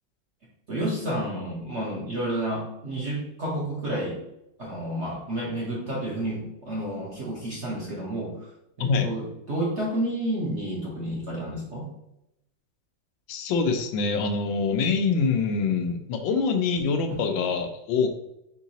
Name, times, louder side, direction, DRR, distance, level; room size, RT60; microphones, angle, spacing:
voice 1, 0.7-4.2 4.6-8.5 8.8-11.9, right 1 dB, 55° right, -4 dB, 0.8 m, -30 dB
voice 2, 13.3-18.1, left 5 dB, 85° left, 6 dB, 1.4 m, -25 dB
4.4 x 3.8 x 2.8 m, 0.85 s
omnidirectional pair, 2.1 m